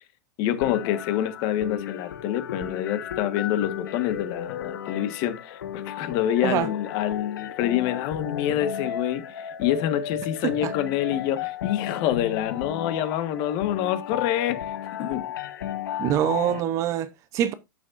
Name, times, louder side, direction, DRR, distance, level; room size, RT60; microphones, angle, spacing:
voice 1, 0.4-14.7 15.0-15.3, left 11 dB, 40° left, 1.5 m, -27 dB
sound 1, 0.6-16.6, left 9 dB, 80° left, 1.3 m, -34 dB
voice 2, 16.0-17.5, right 11 dB, 30° right, 0.8 m, -25 dB
11.5 x 6.7 x 2.6 m
supercardioid pair, 150°, 11 cm